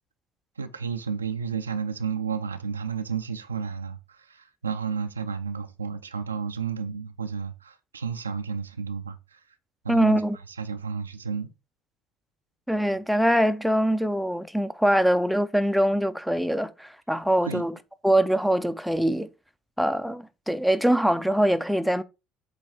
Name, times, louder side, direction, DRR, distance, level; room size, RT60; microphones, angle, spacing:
voice 1, 0.6-9.4 9.8-10.2 10.5-11.5 17.4-17.6, right 6 dB, 80° right, 0.4 m, -32 dB
voice 2, 9.9-10.4 12.7-17.8 18.0-19.3 19.8-22.0, equal, ahead, 0.5 m, -23 dB
8.0 x 3.1 x 4.3 m
figure-of-eight pair, 60°, 0 cm